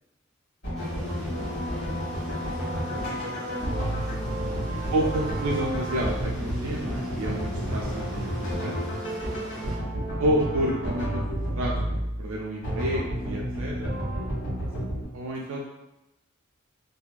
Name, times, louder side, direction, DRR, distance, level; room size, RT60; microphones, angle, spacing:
sound 1, 0.6-15.0, equal, 60° left, 1.4 m, -31 dB
sound 2, 0.8-9.8, equal, 5° left, 0.8 m, -39 dB
voice 1, 1.2-1.5 3.2-4.0 4.9-8.8 10.2-11.2 11.5-13.9 15.1-15.6, right 1 dB, 75° right, -2 dB, 0.3 m, -30 dB
voice 2, 2.4-3.3 4.4-4.8 9.2-10.0 14.6-15.3, equal, 45° right, -3 dB, 0.7 m, -48 dB
2.6 x 2.4 x 2.2 m, 0.94 s
head